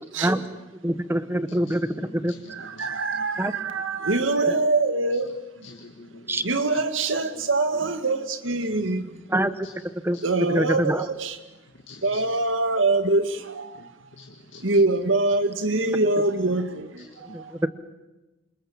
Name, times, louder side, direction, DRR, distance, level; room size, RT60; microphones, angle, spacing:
voice 1, 0.8-2.3 3.4-3.5 6.3-6.4 9.3-9.7 10.0-10.2 10.5-11.1 17.3-17.7, right 1 dB, 10° right, 12 dB, 1.1 m, -25 dB
voice 2, 1.5-1.8 2.1-2.9 5.6-6.8 7.3-7.4 7.7-7.8 9.6-9.7 10.1-10.3 11.9-12.3 13.7-14.8 17.0-17.2, left 3 dB, 75° left, 2 dB, 2.1 m, -47 dB
voice 3, 2.5-5.7 6.4-9.3 10.2-11.4 12.0-14.0 14.6-17.6, right 2 dB, 90° right, 9 dB, 2.1 m, -24 dB
27.0 x 27.0 x 7.4 m, 1.1 s
head